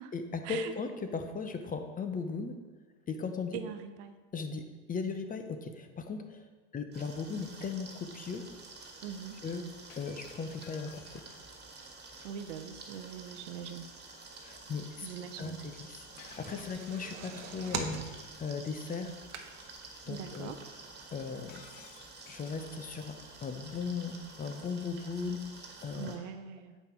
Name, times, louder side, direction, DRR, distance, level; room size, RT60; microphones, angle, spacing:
voice 1, 0.1-2.6 3.1-3.6 4.3-8.5 9.4-9.7 9.9-11.2 12.1-12.3 14.4-15.1 15.4-19.2 20.0-20.5 21.1-21.6 22.3-25.5 25.8-26.1, left 5 dB, 25° left, 7 dB, 0.8 m, -37 dB
voice 2, 3.5-4.1 9.0-9.4 12.2-13.9 15.0-15.6 20.1-20.6 25.9-26.8, right 8 dB, 70° right, 9 dB, 0.8 m, -42 dB
sound 1, 6.9-26.2, right 3 dB, 30° right, 1.8 m, -50 dB
Shatter, 9.9-11.6 16.2-17.2 21.5-22.7, left 8 dB, 85° left, 0.8 m, -56 dB
sound 2, 15.9-19.9 20.3-20.4 20.7-20.8, right 6 dB, 45° right, 1.0 m, -41 dB
8.2 x 5.6 x 4.4 m, 1.3 s
hypercardioid pair, 95°, 37 cm